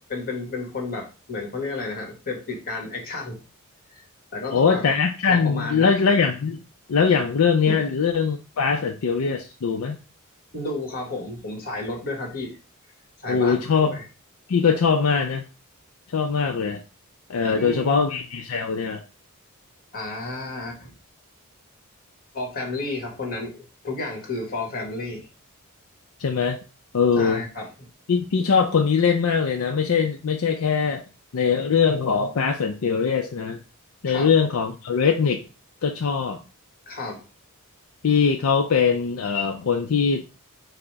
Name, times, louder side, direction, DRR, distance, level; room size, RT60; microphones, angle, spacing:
voice 1, 0.1-3.4 3.9-4.0 4.3-4.8 5.3-6.0 7.6-7.8 10.5-12.6 13.2-14.0 17.5-18.1 19.9-20.9 22.3-25.2 27.1-27.9 34.1-34.3 36.9-37.2, left 2 dB, 45° left, 1 dB, 1.5 m, -32 dB
voice 2, 4.5-6.6 6.9-10.0 13.3-14.0 14.5-15.4 16.1-16.8 17.3-19.0 26.2-26.6 26.9-27.4 28.1-31.0 31.3-33.6 34.0-35.4 35.8-36.4 38.0-40.2, left 6 dB, 75° left, 4 dB, 0.5 m, -21 dB
4.9 x 2.1 x 4.6 m, 0.32 s
head